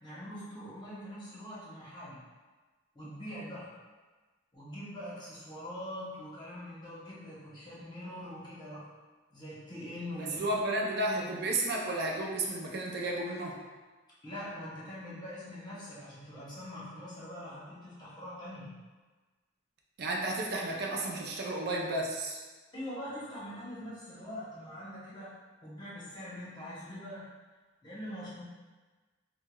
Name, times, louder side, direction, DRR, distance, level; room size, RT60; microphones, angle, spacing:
voice 1, 0.0-2.2 2.9-3.7 4.5-8.9 9.3-10.5 11.1-11.5 14.2-18.7 22.7-25.3 25.6-27.3 27.8-28.4, equal, 25° left, -8 dB, 0.9 m, -43 dB
voice 2, 10.2-13.6 20.0-22.4, right 2 dB, 55° right, -1 dB, 0.4 m, -32 dB
4.4 x 2.2 x 2.2 m, 1.3 s
head